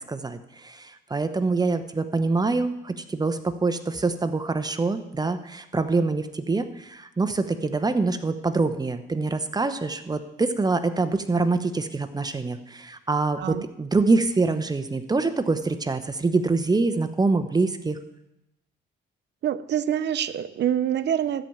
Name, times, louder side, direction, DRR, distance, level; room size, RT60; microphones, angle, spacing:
voice 1, 0.1-18.0, right 3 dB, 20° right, 10 dB, 0.9 m, -25 dB
voice 2, 19.4-21.5, right 10 dB, 60° right, 14 dB, 0.7 m, -26 dB
13.0 x 4.6 x 8.8 m, 0.89 s
cardioid pair, 90°, 20 cm